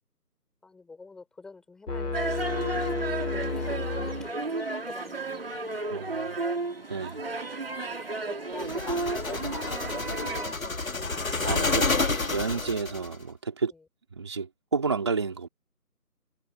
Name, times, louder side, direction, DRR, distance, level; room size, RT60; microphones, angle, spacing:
voice 1, 0.6-2.7 3.3-6.6 7.0-7.2 7.5-7.6 8.3-11.8 12.5-12.8, left 3 dB, ahead, 5.3 m, -47 dB
sound 1, 1.9-4.8, left 3 dB, 75° left, 2.4 m, -32 dB
sound 2, 2.1-10.5, right 3 dB, 35° right, 2.8 m, -33 dB
voice 2, 5.9-6.3 6.9-7.2 8.6-8.7 11.4-13.7 14.1-15.5, right 5 dB, 15° right, 3.1 m, -31 dB
sound 3, 8.6-13.1, left 3 dB, 55° left, 2.1 m, -29 dB
figure-of-eight pair, 175°, 48 cm